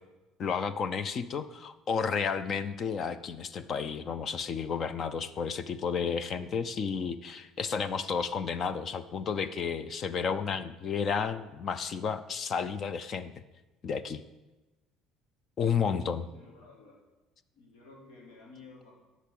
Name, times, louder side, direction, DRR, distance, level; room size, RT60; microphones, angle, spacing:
voice 1, 0.4-13.3 13.8-14.2 15.6-16.2, left 6 dB, 40° left, 13 dB, 0.6 m, -32 dB
voice 2, 16.3-17.0 17.5-18.9, left 3 dB, 80° left, -2 dB, 4.1 m, -53 dB
10.5 x 6.0 x 8.6 m, 1.1 s
cardioid pair, 125°, 0 cm